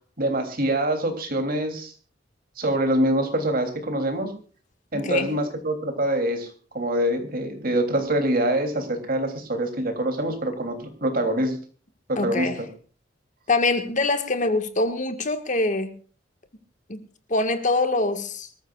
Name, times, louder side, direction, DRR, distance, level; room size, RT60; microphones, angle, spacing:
voice 1, 0.2-1.9 2.6-4.3 4.9-11.6 12.1-12.7, right 1 dB, 50° right, 3.2 m, -25 dB
voice 2, 4.9-5.3 12.2-12.6 13.5-16.0 16.9-17.0 17.3-18.5, left 2 dB, 45° left, 1.7 m, -24 dB
24.5 x 14.0 x 2.5 m
head